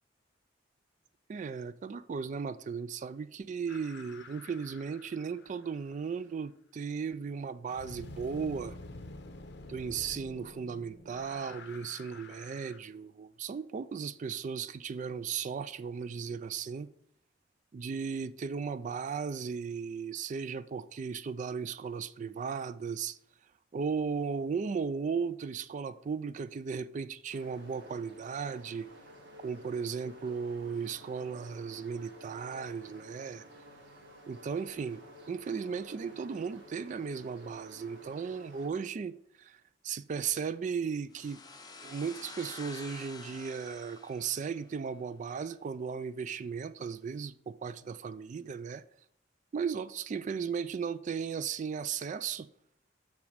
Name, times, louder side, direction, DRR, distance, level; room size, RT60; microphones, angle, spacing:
voice 1, 1.3-8.8 9.7-16.9 17.7-23.2 23.7-28.9 29.4-33.4 34.3-35.0 35.3-39.6 39.8-41.4 41.8-48.8 49.5-52.5, right 6 dB, 40° right, 0.3 m, -36 dB
sound 1, 3.7-6.0 7.7-12.8, left 2 dB, 65° left, 0.8 m, -48 dB
sound 2, 27.3-38.7, equal, 70° right, 1.7 m, -53 dB
sound 3, 41.1-44.8, left 3 dB, 20° left, 0.8 m, -48 dB
7.0 x 6.2 x 4.9 m
head